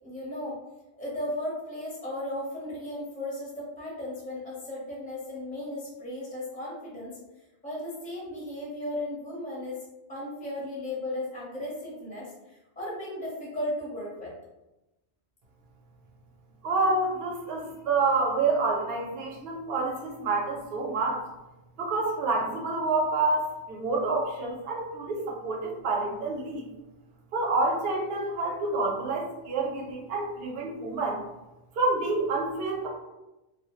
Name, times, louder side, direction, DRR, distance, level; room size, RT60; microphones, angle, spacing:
voice 1, 0.0-0.6 1.0-7.2 7.6-9.8 10.1-14.3, left 1 dB, 10° left, -6 dB, 0.6 m, -35 dB
voice 2, 16.6-21.2 21.8-26.6 27.3-31.2 31.8-32.9, right 3 dB, 65° right, -1 dB, 0.7 m, -28 dB
2.1 x 2.0 x 2.9 m, 1.0 s
omnidirectional pair, 1.2 m